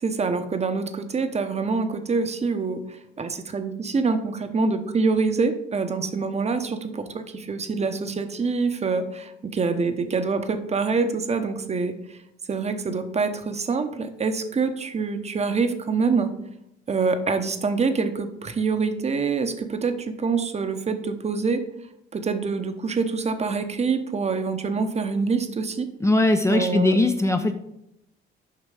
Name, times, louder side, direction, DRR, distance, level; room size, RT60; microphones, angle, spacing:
voice 1, 0.0-11.9 12.5-16.3 16.9-21.6 22.1-25.9 26.5-27.0 27.3-27.4, right 4 dB, 35° right, 8 dB, 0.9 m, -25 dB
voice 2, 26.0-27.5, left 2 dB, 15° left, 6 dB, 0.6 m, -20 dB
7.5 x 5.1 x 4.9 m, 0.81 s
cardioid pair, 90°, 20 cm